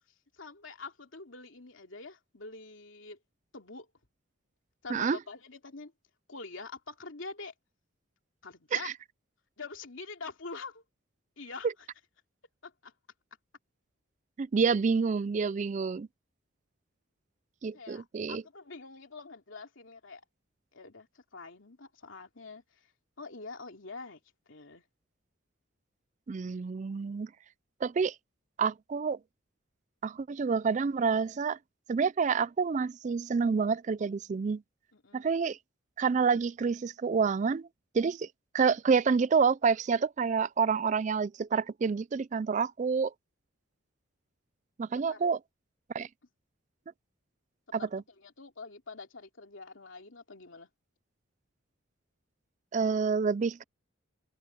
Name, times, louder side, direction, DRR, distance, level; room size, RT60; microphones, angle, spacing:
voice 1, 0.3-3.2 3.5-3.9 4.8-5.9 6.3-7.5 8.4-8.9 9.6-10.8 11.4-11.7 12.6-12.9 17.7-20.2 20.7-22.9 23.2-24.2 24.5-24.8 34.9-35.4 45.1-45.2 47.8-47.9 48.2-50.7, left 4 dB, 75° left, 2.8 m, -45 dB
voice 2, 14.4-16.1 17.6-18.4 26.3-27.3 27.8-28.2 28.6-29.2 30.0-31.6 31.9-34.6 35.1-35.6 36.0-37.7 37.9-38.3 38.5-43.1 44.8-45.4 45.9-46.1 47.7-48.0 52.7-53.6, right 5 dB, 35° right, 0.3 m, -28 dB
head